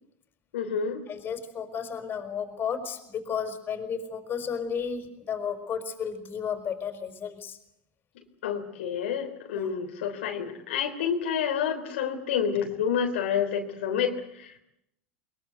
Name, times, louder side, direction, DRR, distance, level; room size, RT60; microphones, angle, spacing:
voice 1, 0.5-1.0 8.4-14.6, left 7 dB, 80° left, 3 dB, 3.6 m, -29 dB
voice 2, 1.1-7.6 9.5-9.7, left 7 dB, 35° left, 8 dB, 5.2 m, -33 dB
22.5 x 22.0 x 8.1 m, 0.78 s
hypercardioid pair, 100°, 6 cm